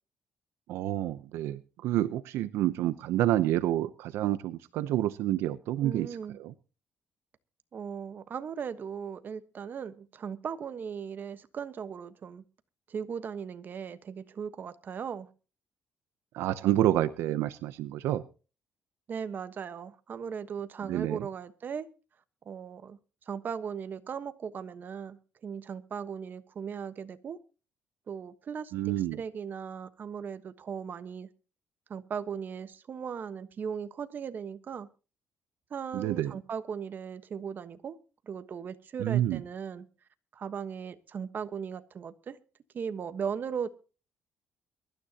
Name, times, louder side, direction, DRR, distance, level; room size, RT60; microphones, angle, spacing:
voice 1, 0.7-6.1 6.4-6.5 16.3-18.2 20.9-21.3 28.7-29.2 35.9-36.4 39.0-39.4, right 13 dB, 90° right, 0.7 m, -28 dB
voice 2, 5.8-6.4 7.7-12.4 12.9-15.3 19.1-21.9 22.5-23.0 23.3-27.4 28.1-31.3 31.9-34.9 35.7-38.0 38.3-39.9 40.3-42.4 42.7-43.7, right 7 dB, 50° right, 1.2 m, -38 dB
23.0 x 12.5 x 2.9 m
cardioid pair, 95°, 4 cm